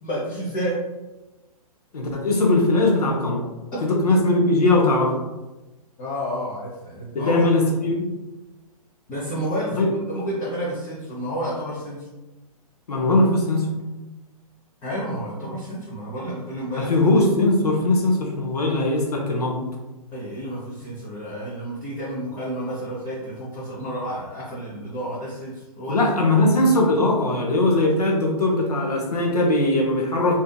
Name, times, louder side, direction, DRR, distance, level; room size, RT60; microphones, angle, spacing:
voice 1, 0.0-0.8 6.0-7.5 9.1-12.1 14.8-16.9 20.1-26.0, equal, 20° left, -9 dB, 0.6 m, -30 dB
voice 2, 1.9-3.4 3.8-5.1 7.1-8.1 9.7-9.9 12.9-13.7 16.8-19.6 25.9-30.4, left 2 dB, 75° left, 0 dB, 0.8 m, -20 dB
2.7 x 2.5 x 2.2 m, 1.1 s
figure-of-eight pair, 125°, 20 cm